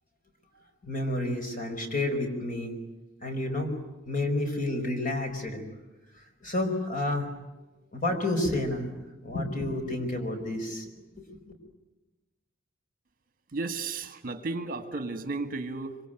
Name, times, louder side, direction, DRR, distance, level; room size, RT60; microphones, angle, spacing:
voice 1, 0.8-2.7 3.2-3.7 4.1-5.6 6.4-7.3 7.9-8.9 9.2-10.9 11.1-11.2, left 1 dB, 45° left, 5 dB, 5.2 m, -30 dB
voice 2, 13.5-16.1, right 3 dB, 45° right, 8 dB, 2.0 m, -34 dB
25.5 x 25.5 x 9.2 m, 1.1 s
head